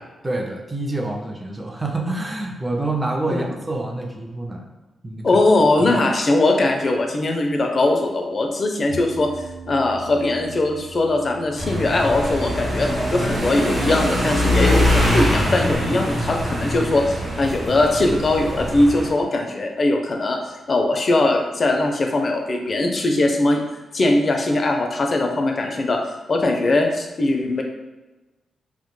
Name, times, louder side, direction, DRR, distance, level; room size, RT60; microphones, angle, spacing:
voice 1, 0.2-4.6 5.0-5.4 5.9-6.0, right 2 dB, 20° right, 2 dB, 0.4 m, -27 dB
voice 2, 5.2-9.3 9.7-20.4 20.7-23.6 23.9-26.0 26.3-27.6, left 2 dB, 50° left, 3 dB, 0.4 m, -20 dB
sound 1, 8.9-19.1, right 3 dB, 85° right, 0.6 m, -44 dB
sound 2, 11.6-19.1, left 1 dB, 65° right, 0.9 m, -23 dB
2.1 x 2.1 x 3.0 m, 1.1 s
cardioid pair, 65°, 0 cm